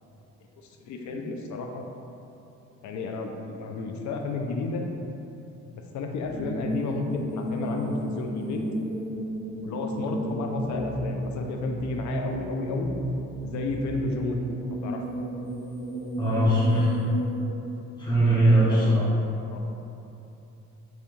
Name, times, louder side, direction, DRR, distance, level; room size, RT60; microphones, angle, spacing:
voice 1, 0.9-1.8 2.8-4.8 5.9-8.6 9.6-12.9 13.4-14.4 14.7-15.0 18.3-18.9 19.5-19.6, left 3 dB, 70° left, 3 dB, 0.5 m, -32 dB
sound 1, 6.2-17.5, right 1 dB, 90° left, 1.0 m, -33 dB
voice 2, 16.2-16.9 18.0-19.1, right 1 dB, 15° left, -10 dB, 1.1 m, -20 dB
3.5 x 3.2 x 3.1 m, 2.9 s
cardioid pair, 90°, 30 cm